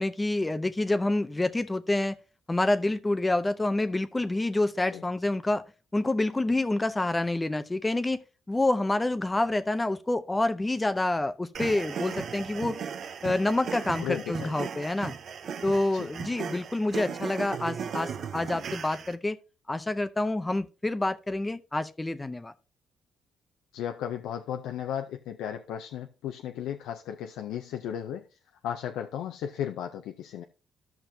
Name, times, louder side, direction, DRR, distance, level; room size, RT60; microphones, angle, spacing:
voice 1, 0.0-2.2 2.5-5.6 5.9-8.2 8.5-12.8 13.2-15.1 15.6-19.4 19.7-22.5, left 2 dB, 15° left, 0.5 m, -27 dB
sound 1, 11.5-19.1, right 7 dB, 60° right, 0.6 m, -37 dB
voice 2, 14.0-14.5 15.9-16.1 23.7-28.2 28.6-30.4, left 9 dB, 90° left, 0.5 m, -35 dB
13.5 x 5.9 x 2.7 m
cardioid pair, 90°, 0 cm